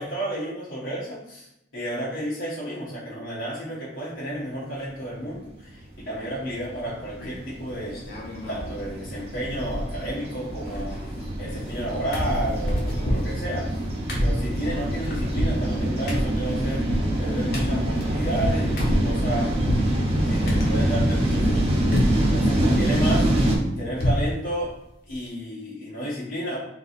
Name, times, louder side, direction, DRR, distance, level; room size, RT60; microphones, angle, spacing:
voice 1, 0.0-1.5 1.7-8.1 8.5-11.0 11.4-13.7 14.2-19.5 20.2-23.3 23.8-24.7 25.1-26.6, right 1 dB, 80° left, -9 dB, 1.4 m, -32 dB
sound 1, 5.8-23.6, right 1 dB, 30° right, 0.9 m, -25 dB
sound 2, 7.2-7.6 7.9-8.7 9.0-9.1 9.4-10.2 10.5-11.8 12.1-19.9 20.5-21.6 21.9-22.4 22.7-24.3 24.7-24.8 25.1-25.3, equal, 55° left, 1.1 m, -28 dB
3.5 x 3.0 x 4.2 m, 0.83 s
head